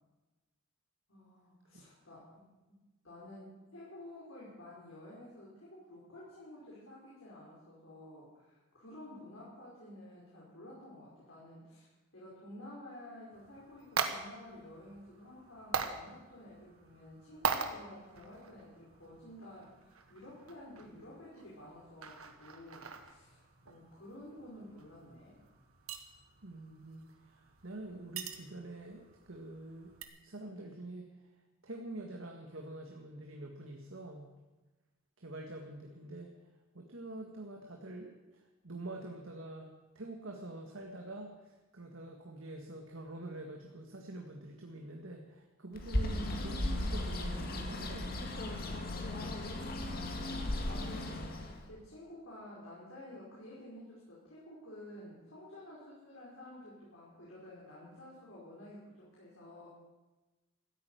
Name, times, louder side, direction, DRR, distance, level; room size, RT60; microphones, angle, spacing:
voice 1, 1.1-2.8 3.0-11.9 12.1-25.4 46.1-46.4 49.1-59.7, left 1 dB, 70° left, -7 dB, 5.2 m, -51 dB
sound 1, 13.3-30.0, right 5 dB, 90° right, 1.5 m, -43 dB
voice 2, 26.4-29.9 30.2-31.1 31.3-34.3 35.2-36.3 36.7-46.2 46.4-48.2, right 2 dB, 70° right, 2 dB, 1.8 m, -46 dB
Bird, 45.7-51.6, left 1 dB, 45° left, 2.1 m, -36 dB
15.0 x 8.9 x 9.4 m, 1.1 s
head